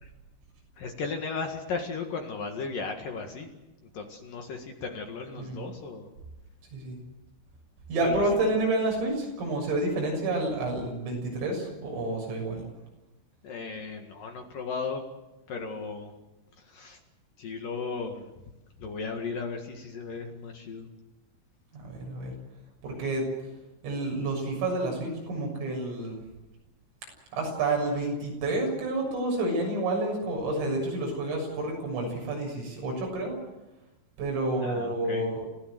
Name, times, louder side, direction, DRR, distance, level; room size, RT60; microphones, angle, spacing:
voice 1, 0.8-3.5 3.8-6.1 8.0-8.2 13.4-15.0 15.5-16.1 16.6-17.0 17.4-18.3 18.8-20.9 34.6-35.3, left 4 dB, 55° left, 3 dB, 3.0 m, -35 dB
voice 2, 7.9-12.6 21.7-22.3 22.8-23.3 23.8-26.2 27.3-33.4 34.2-35.4, right 2 dB, 85° right, 1 dB, 9.5 m, -29 dB
29.0 x 16.0 x 7.9 m, 1.0 s
omnidirectional pair, 5.7 m